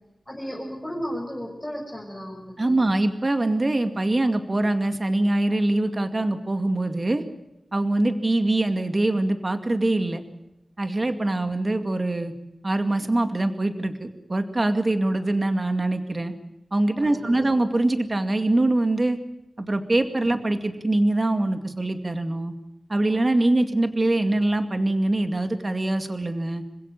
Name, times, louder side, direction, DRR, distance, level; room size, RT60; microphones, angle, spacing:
voice 1, 0.3-2.8 17.0-17.5, equal, 5° left, -4 dB, 7.1 m, -34 dB
voice 2, 2.6-7.2 7.7-10.2 10.8-12.3 12.6-16.3 16.7-19.2 19.6-22.5 22.9-26.6, right 2 dB, 35° right, 7 dB, 2.2 m, -23 dB
27.0 x 16.5 x 8.9 m, 0.92 s
wide cardioid pair, 85°, 0 cm